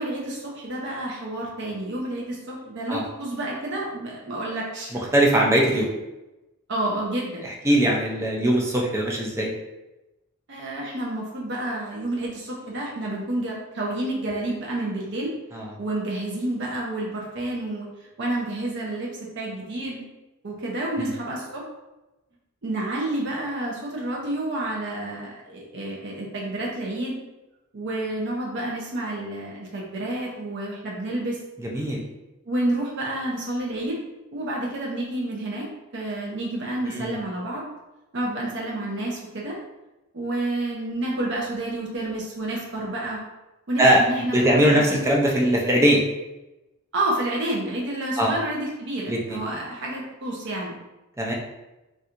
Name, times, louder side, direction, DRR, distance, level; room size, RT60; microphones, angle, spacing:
voice 1, 0.0-5.0 5.3-5.4 6.7-7.5 10.5-15.3 15.8-17.9 18.2-20.0 20.4-21.6 22.6-27.2 27.7-31.4 32.5-34.0 34.3-37.7 38.1-39.6 40.1-43.2 43.7-45.0 46.9-50.8, right 1 dB, 55° right, -3 dB, 0.6 m, -29 dB
voice 2, 5.1-5.9 7.6-9.5 15.5-15.6 21.0-21.1 31.6-32.0 36.8-37.1 43.8-44.0 44.3-46.0 48.2-48.3 49.1-49.4 51.2-51.3, right 1 dB, 15° right, -2 dB, 0.5 m, -20 dB
4.2 x 2.4 x 2.5 m, 1.0 s
head